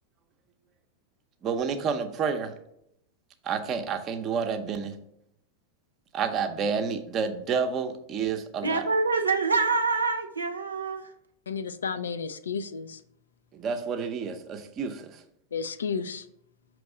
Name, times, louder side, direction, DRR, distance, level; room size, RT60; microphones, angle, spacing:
voice 1, 1.4-2.5 3.4-5.0 6.1-8.8 13.5-15.2, right 6 dB, 30° right, 7 dB, 0.7 m, -29 dB
voice 2, 8.6-11.0, right 4 dB, 75° right, 6 dB, 0.6 m, -25 dB
voice 3, 11.5-13.0 15.5-16.3, left 5 dB, 70° left, 12 dB, 0.4 m, -32 dB
6.1 x 3.1 x 4.9 m, 0.77 s
figure-of-eight pair, 90°, 0 cm